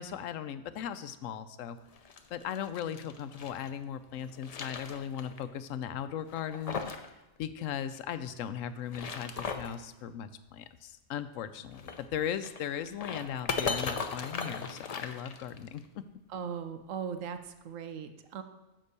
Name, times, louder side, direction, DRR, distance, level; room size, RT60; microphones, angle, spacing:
voice 1, 0.0-1.8 2.3-6.8 7.4-16.0, left 9 dB, 80° left, 12 dB, 1.0 m, -38 dB
sound 1, 1.9-3.7 4.2-5.4 5.7-5.8 6.3-7.1 7.4-7.5 8.7-9.8 11.7-15.8, left 5 dB, 50° left, 0.4 m, -38 dB
voice 2, 16.3-18.4, right 7 dB, 80° right, 9 dB, 1.1 m, -39 dB
9.6 x 3.7 x 6.7 m, 1.0 s
omnidirectional pair, 1.3 m